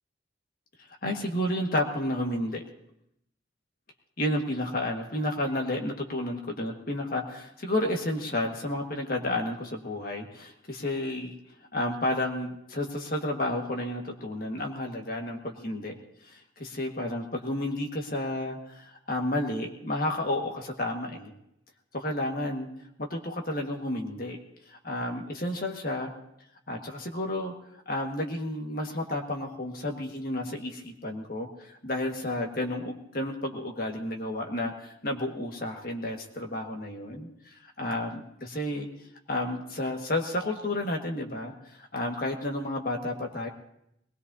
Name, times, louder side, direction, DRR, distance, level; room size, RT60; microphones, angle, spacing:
voice 1, 1.0-2.6 4.2-11.4 11.7-15.9 16.2-21.3 21.9-22.7 23.0-24.4 24.7-26.1 26.7-27.5 27.9-38.9 39.3-43.5, left 1 dB, 50° left, 2 dB, 1.6 m, -31 dB
21.5 x 19.5 x 2.7 m, 0.78 s
head